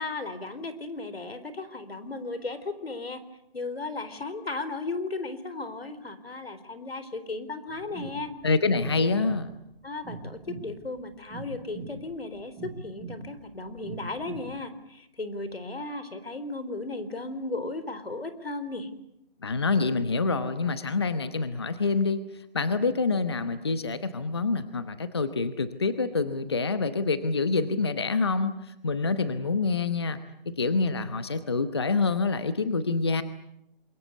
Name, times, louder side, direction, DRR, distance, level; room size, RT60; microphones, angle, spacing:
voice 1, 0.0-3.2 3.5-8.3 9.8-18.9, left 3 dB, 85° left, 12 dB, 4.2 m, -35 dB
sound 1, 7.7-14.6, right 3 dB, ahead, 3.3 m, -42 dB
voice 2, 8.4-9.5 19.4-30.2 30.5-33.2, left 4 dB, 25° left, 12 dB, 1.0 m, -26 dB
28.0 x 23.0 x 8.3 m, 0.78 s
hypercardioid pair, 175°, 29 cm